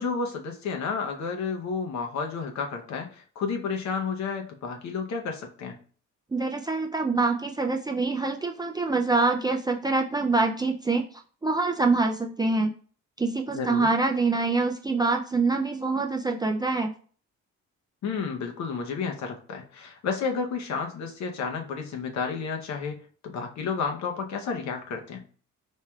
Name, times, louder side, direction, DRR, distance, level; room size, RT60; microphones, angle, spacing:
voice 1, 0.0-5.8 13.5-13.9 18.0-25.2, left 5 dB, 65° left, 3 dB, 0.8 m, -31 dB
voice 2, 6.3-11.0 11.4-12.7 13.2-16.9, right 3 dB, 15° right, 2 dB, 0.3 m, -25 dB
4.5 x 3.1 x 2.3 m, 0.43 s
cardioid pair, 90°, 30 cm